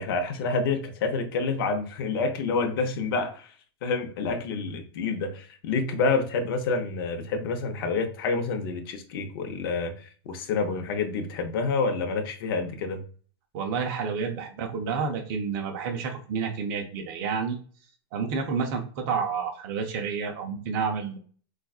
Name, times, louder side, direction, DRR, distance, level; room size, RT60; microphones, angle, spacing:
voice 1, 0.0-3.5 3.8-13.0, left 4 dB, 60° left, 5 dB, 0.7 m, -28 dB
voice 2, 13.5-17.6 18.1-21.2, right 5 dB, 40° right, 2 dB, 0.6 m, -29 dB
4.1 x 2.3 x 2.3 m, 0.42 s
supercardioid pair, 160°, 14 cm